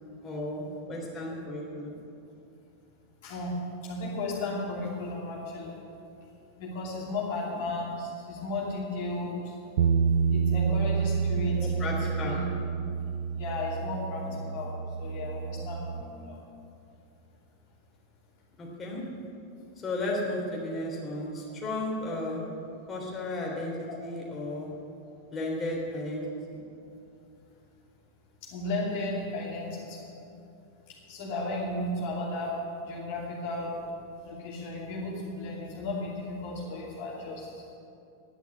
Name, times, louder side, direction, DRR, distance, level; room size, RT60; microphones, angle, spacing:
voice 1, 0.2-2.0 7.5-7.6 11.5-12.3 14.2-14.4 18.6-19.0 19.8-22.4 22.9-23.7 24.0-24.7 25.3-26.6, left 1 dB, 20° left, -3 dB, 3.1 m, -34 dB
voice 2, 3.2-3.6 3.8-5.8 6.6-9.6 10.3-11.9 12.2-12.4 13.3-16.4 23.9-24.0 28.4-30.1 30.9-33.8 34.2-37.6, left 2 dB, 50° left, -5 dB, 2.8 m, -34 dB
Bass guitar, 9.8-16.0, right 6 dB, 55° right, 0.5 m, -28 dB
11.0 x 10.5 x 8.2 m, 2.6 s
figure-of-eight pair, 90°, 0 cm